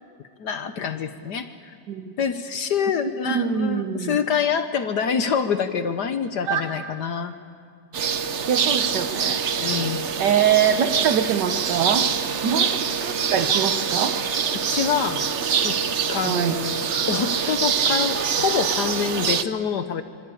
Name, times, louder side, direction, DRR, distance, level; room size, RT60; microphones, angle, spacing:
voice 1, 0.4-1.7 2.2-7.3 9.6-10.1 14.5-15.3 15.6-15.8 16.1-20.0, left 7 dB, 65° left, 9 dB, 1.5 m, -26 dB
voice 2, 3.3-4.2 6.4-6.6 8.5-9.7 10.2-12.1 12.4-14.2 16.2-16.6, right 8 dB, 65° right, 7 dB, 1.6 m, -24 dB
sound 1, 7.9-19.4, right 7 dB, 50° right, 0.9 m, -25 dB
25.5 x 25.5 x 8.5 m, 2.1 s
omnidirectional pair, 2.0 m